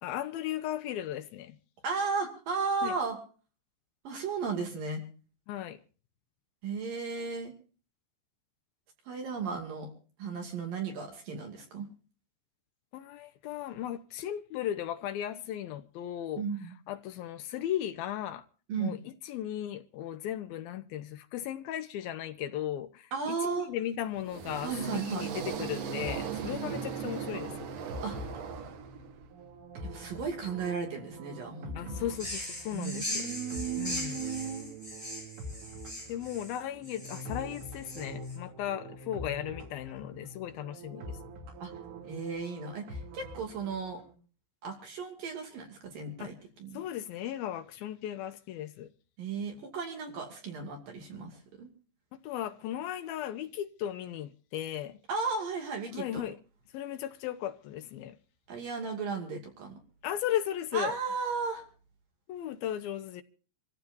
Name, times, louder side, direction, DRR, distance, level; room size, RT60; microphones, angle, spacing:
voice 1, 0.0-1.6 2.8-2.9 5.5-5.8 12.9-16.4 16.9-18.4 18.8-19.0 19.3-27.5 31.8-33.2 33.8-34.2 36.1-41.1 46.2-46.3 46.7-48.9 52.2-55.0 55.9-56.3 56.7-58.2 60.0-61.0 62.3-63.2, left 11 dB, 75° left, 2.3 m, -36 dB
voice 2, 1.8-3.2 4.0-5.0 6.6-7.5 9.1-9.9 10.2-11.9 16.4-16.8 18.7-19.0 23.1-23.7 24.6-25.2 28.0-28.2 29.8-32.0 32.7-34.7 41.6-41.7 42.0-44.0 44.6-46.8 49.2-51.7 55.1-56.3 58.5-59.8 60.7-61.6, right 5 dB, 55° right, 3.9 m, -35 dB
sound 1, 24.1-29.3, right 8 dB, 90° right, 1.4 m, -38 dB
sound 2, 24.5-44.1, equal, 75° right, 5.0 m, -45 dB
sound 3, 32.1-38.4, left 1 dB, 5° right, 6.1 m, -40 dB
27.0 x 15.0 x 2.6 m
omnidirectional pair, 5.1 m